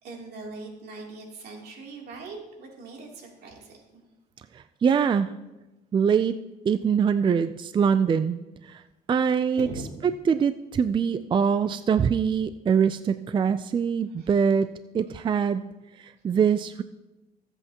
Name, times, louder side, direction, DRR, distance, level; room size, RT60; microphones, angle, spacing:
voice 1, 0.0-4.0 9.2-9.8 14.2-14.4 15.0-15.4 16.3-16.4, right 3 dB, 70° right, -1 dB, 3.1 m, -42 dB
voice 2, 4.5-5.3 5.9-6.4 6.6-8.4 8.6-8.8 9.1-9.7 10.3-14.7 14.9-15.6 16.0-16.8, right 7 dB, 30° right, 11 dB, 0.4 m, -23 dB
22.0 x 8.1 x 2.9 m, 1.0 s
cardioid pair, 110°, 17 cm